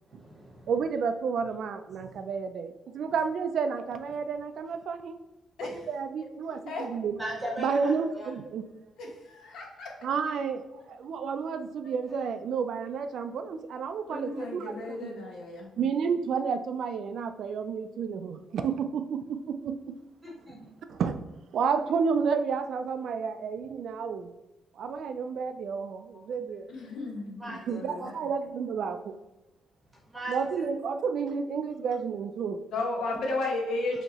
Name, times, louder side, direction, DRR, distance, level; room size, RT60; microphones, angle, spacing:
voice 1, 0.1-0.7 2.0-2.2 5.6-5.8 7.2-8.3 20.2-20.7 27.4-27.7 28.0-28.1 30.1-30.4, equal, 10° right, -4 dB, 1.0 m, -38 dB
voice 2, 0.7-5.2 5.6-7.2 7.6-8.6 10.0-15.2 15.8-20.0 20.9-21.3 21.5-24.3 24.8-26.7 27.5-29.2 30.3-32.6, right 6 dB, 55° right, 8 dB, 0.3 m, -31 dB
voice 3, 9.0-9.9 11.8-11.9 14.1-15.7 26.1-26.2 26.7-28.1 32.7-34.0, left 2 dB, 70° left, 0 dB, 1.0 m, -34 dB
5.2 x 2.8 x 2.8 m, 1.0 s
cardioid pair, 165°, 0 cm